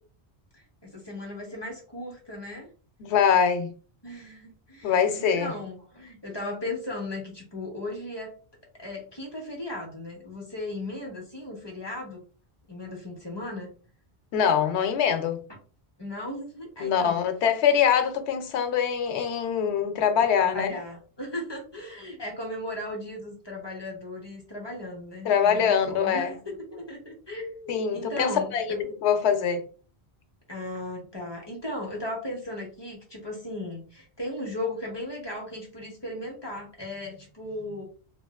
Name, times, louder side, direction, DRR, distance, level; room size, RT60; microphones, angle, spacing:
voice 1, 0.5-2.7 4.0-8.3 8.7-12.2 12.7-13.7 16.0-17.2 20.3-28.8 30.5-37.8, left 1 dB, 25° left, 0.9 m, -36 dB
voice 2, 3.0-3.7 4.8-5.5 14.3-15.4 16.8-20.7 25.2-26.3 27.7-29.6, left 7 dB, 85° left, 0.9 m, -23 dB
2.9 x 2.8 x 2.3 m
omnidirectional pair, 1.1 m